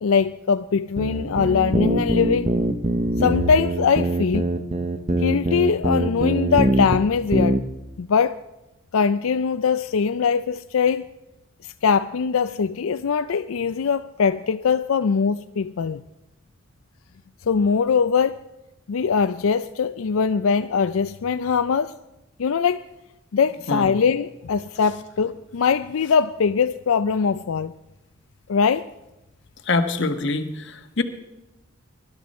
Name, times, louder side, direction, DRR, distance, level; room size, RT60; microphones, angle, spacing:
voice 1, 0.0-2.5 3.1-4.5 5.1-7.6 8.0-8.4 8.9-11.1 11.6-16.0 17.5-18.4 18.9-21.9 22.4-22.9 23.3-27.7 28.5-28.9, left 6 dB, 90° left, 0.4 m, -22 dB
sound 1, 1.0-7.0 7.3-7.6, right 1 dB, 30° right, 0.9 m, -23 dB
voice 2, 29.6-31.0, left 3 dB, 60° left, 1.3 m, -24 dB
23.5 x 12.0 x 4.2 m
head